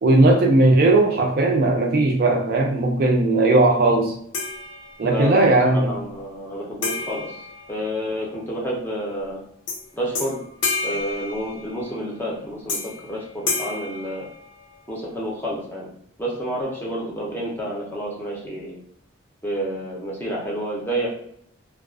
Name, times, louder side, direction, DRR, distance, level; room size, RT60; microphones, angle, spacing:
voice 1, 0.0-4.1 5.0-6.0, right 2 dB, 45° right, 1 dB, 0.3 m, -17 dB
sound 1, 4.3-5.3 6.8-8.4 9.7-9.8 10.1-12.0 12.7-13.1 13.5-14.9, left 3 dB, 65° left, 0.5 m, -30 dB
voice 2, 5.1-5.5 5.9-7.4 7.7-9.4 9.9-10.4 10.8-14.3 14.9-15.9 16.2-18.8 19.4-21.1, equal, 10° left, -4 dB, 0.6 m, -29 dB
2.3 x 2.2 x 2.3 m, 0.68 s
head